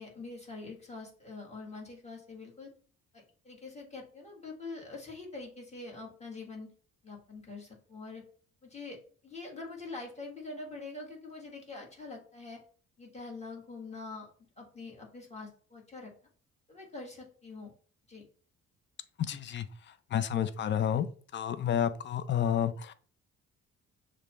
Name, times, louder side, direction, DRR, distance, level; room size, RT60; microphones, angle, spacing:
voice 1, 0.0-2.7 3.1-6.7 7.0-8.2 8.6-9.0 9.2-12.6 13.0-14.3 14.6-16.1 16.7-17.7 18.1-18.2, left 3 dB, 20° left, -1 dB, 1.6 m, -44 dB
voice 2, 19.2-21.1 21.3-22.9, left 9 dB, 40° left, 12 dB, 0.4 m, -30 dB
6.5 x 2.2 x 3.0 m, 0.43 s
cardioid pair, 90°, 30 cm